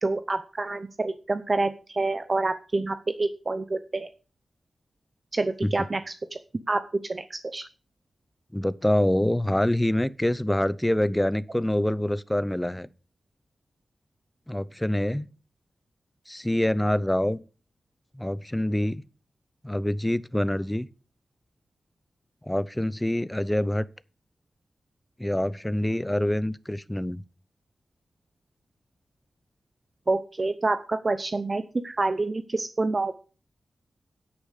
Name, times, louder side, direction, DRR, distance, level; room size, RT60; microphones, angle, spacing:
voice 1, 0.0-4.1 5.3-6.0 6.7-6.8 7.1-7.6 30.1-33.2, right 3 dB, 35° right, 0.7 m, -27 dB
voice 2, 8.5-12.9 14.5-15.3 16.3-17.4 18.1-19.0 19.6-20.9 22.4-23.8 25.2-27.2, left 1 dB, 10° left, 0.6 m, -25 dB
9.9 x 8.7 x 6.6 m
wide cardioid pair, 125°, 0 cm